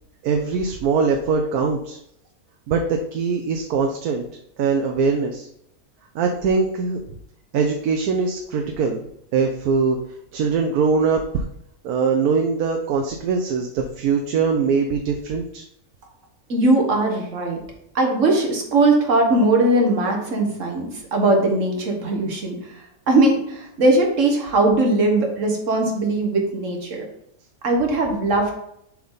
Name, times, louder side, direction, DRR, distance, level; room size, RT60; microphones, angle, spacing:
voice 1, 0.2-2.0 2.7-4.2 4.6-5.5 6.1-7.0 7.5-9.0 9.3-10.0 10.3-11.4 11.8-15.6, right 5 dB, 90° right, 3 dB, 1.2 m, -22 dB
voice 2, 16.5-17.6 17.9-27.0 27.6-28.5, right 2 dB, 60° right, 1 dB, 1.7 m, -20 dB
7.0 x 4.8 x 3.9 m, 0.74 s
omnidirectional pair, 1.5 m